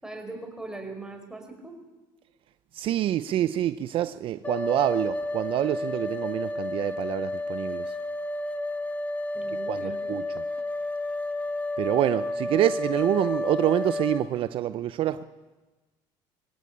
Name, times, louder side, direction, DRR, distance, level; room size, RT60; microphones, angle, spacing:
voice 1, 0.0-1.7 9.3-10.1, right 3 dB, 5° right, 4 dB, 4.8 m, -40 dB
voice 2, 2.7-7.9 9.7-10.2 11.8-15.2, right 12 dB, 60° right, 13 dB, 0.6 m, -26 dB
sound 1, 4.4-14.2, left 2 dB, 15° left, 2.1 m, -31 dB
23.0 x 17.0 x 8.6 m, 1.2 s
supercardioid pair, 95°, 11 cm